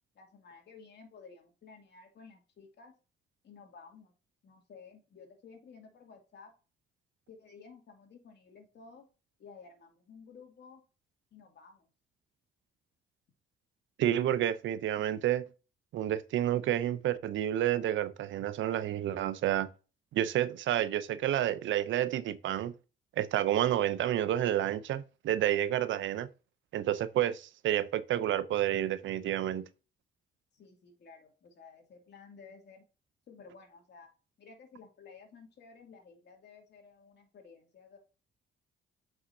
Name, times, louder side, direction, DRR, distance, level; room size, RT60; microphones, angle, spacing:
voice 1, 0.1-2.9 3.4-4.1 4.4-6.5 7.3-9.1 9.4-10.8 11.3-11.9 30.5-32.8 33.3-34.1 34.4-38.0, left 5 dB, 60° left, 2.5 m, -54 dB
voice 2, 14.0-15.4 15.9-19.7 20.1-22.7 23.2-26.3 26.7-29.6, right 12 dB, 75° right, 0.6 m, -30 dB
8.0 x 5.7 x 2.7 m
cardioid pair, 90°, 20 cm